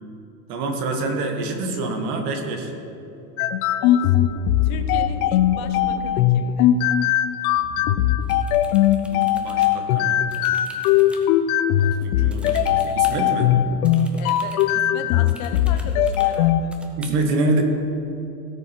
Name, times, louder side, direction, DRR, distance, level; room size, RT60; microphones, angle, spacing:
voice 1, 0.5-2.7 9.1-10.2 11.8-13.5 17.0-17.6, right 2 dB, 65° right, 4 dB, 1.9 m, -26 dB
sound 1, 3.4-16.6, left 11 dB, 65° left, 0.7 m, -20 dB
voice 2, 3.8-4.3 4.6-6.7 14.2-16.7, left 7 dB, 50° left, 7 dB, 1.1 m, -37 dB
sound 2, 4.1-6.5 7.5-8.5, right 6 dB, 40° right, 0.7 m, -40 dB
sound 3, 8.2-9.8 10.3-11.3 12.3-13.2 13.8-14.7 15.3-16.4 16.7-17.1, equal, ahead, 0.6 m, -45 dB
17.0 x 6.9 x 4.5 m, 2.8 s
supercardioid pair, 150°, 47 cm